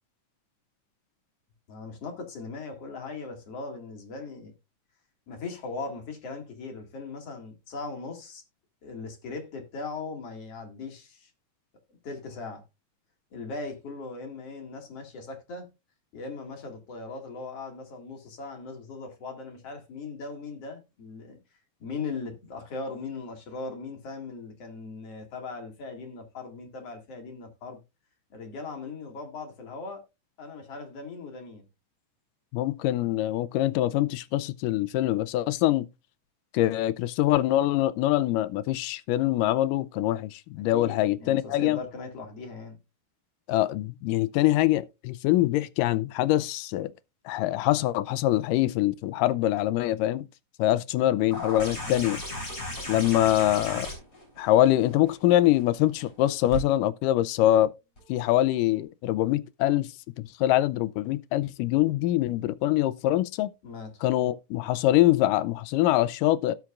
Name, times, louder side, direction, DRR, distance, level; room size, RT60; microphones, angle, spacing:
voice 1, 1.7-4.5 5.3-8.4 8.8-11.3 11.9-12.6 13.3-15.7 16.1-21.4 21.8-27.8 28.3-30.1 30.4-31.6 40.5-42.8 51.8-52.1 63.6-63.9, left 4 dB, 50° left, 3.0 m, -39 dB
voice 2, 32.5-35.9 36.5-41.8 43.5-46.9 47.3-50.3 50.6-52.2 52.9-53.9 54.4-57.7 58.1-59.9 60.4-63.5 64.0-66.5, left 14 dB, 80° left, 2.2 m, -24 dB
sound 1, 51.3-56.6 58.0-58.1, left 1 dB, 25° left, 5.0 m, -36 dB
17.5 x 5.9 x 2.4 m
omnidirectional pair, 3.8 m